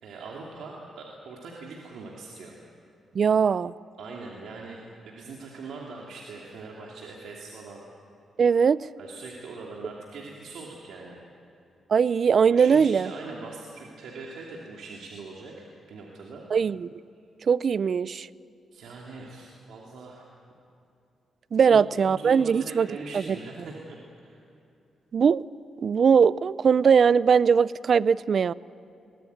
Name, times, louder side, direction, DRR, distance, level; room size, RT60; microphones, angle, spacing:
voice 1, 0.0-2.6 4.0-7.8 9.0-11.2 12.4-16.4 18.7-20.3 21.6-24.4, right 3 dB, 85° right, -2 dB, 2.7 m, -41 dB
voice 2, 3.1-3.7 8.4-8.8 11.9-13.1 16.5-16.9 17.5-18.3 21.5-22.9 25.1-25.4 25.8-28.5, right 6 dB, 55° right, 19 dB, 0.5 m, -20 dB
22.5 x 18.5 x 9.4 m, 2.7 s
cardioid pair, 80°, 0 cm